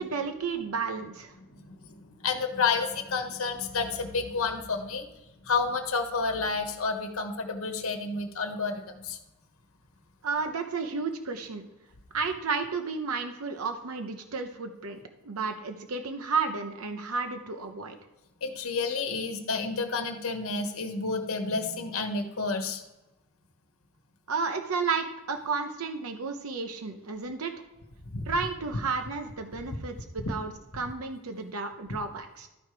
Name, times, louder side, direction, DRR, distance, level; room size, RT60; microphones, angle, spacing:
voice 1, 0.0-1.3 10.2-11.6 12.1-15.0 15.2-18.0 24.3-27.5 28.3-32.5, right 4 dB, 85° right, 6 dB, 0.7 m, -32 dB
voice 2, 1.5-5.1 5.4-9.2 18.4-22.8 28.1-28.2 30.2-30.3, left 4 dB, 75° left, 5 dB, 1.1 m, -30 dB
12.5 x 4.6 x 4.9 m, 1.0 s
head